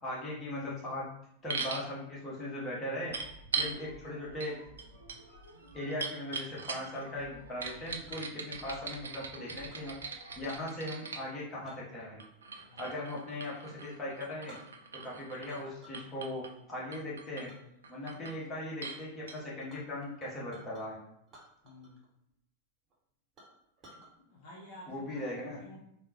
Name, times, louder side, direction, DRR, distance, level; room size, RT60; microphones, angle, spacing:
voice 1, 0.0-1.1 1.4-3.1 3.5-4.5 5.7-9.9 10.3-12.2 12.8-14.6 15.0-17.5 17.9-20.9 24.9-25.6, left 1 dB, 20° left, -6 dB, 1.1 m, -39 dB
sound 1, 1.5-1.9 3.1-3.8 4.4-4.5 4.8-7.0 7.6-11.2 12.2-15.6 15.9-16.5 16.9-17.5 17.8-18.4 18.8-19.0 19.3-19.4, right 5 dB, 70° right, 0.3 m, -40 dB
sound 2, 2.9-10.7, right 1 dB, 90° right, 0.7 m, -54 dB
Chink clink, 6.6-6.8 8.1-8.9 9.7-10.0 10.3-10.7 11.7-13.2 13.5-13.7 14.1-14.2 14.5-15.1 15.4-16.1 16.5-16.8 17.5-17.6 18.1-18.5 18.9-19.0 19.2-20.8 21.3-22.1 22.3-22.4 22.9-23.0 23.4-24.1, right 1 dB, 30° right, 0.9 m, -57 dB
voice 2, 12.6-13.0 21.6-22.0 23.9-25.8, equal, 50° left, -5 dB, 0.7 m, -53 dB
3.7 x 2.0 x 2.8 m, 0.76 s
figure-of-eight pair, 90°, 0 cm